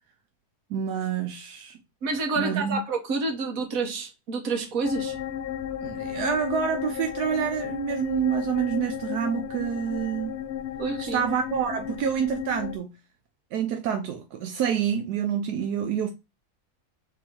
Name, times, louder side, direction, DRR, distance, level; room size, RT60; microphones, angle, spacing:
voice 1, 0.7-1.8 2.4-2.8 5.8-10.4 11.0-12.9 13.5-16.1, right 8 dB, 85° right, 1.1 m, -27 dB
voice 2, 2.0-5.1 10.8-11.2, right 3 dB, 60° right, 1.5 m, -28 dB
sound 1, 4.8-12.8, left 10 dB, 70° left, 0.6 m, -34 dB
4.0 x 2.8 x 4.4 m
omnidirectional pair, 1.7 m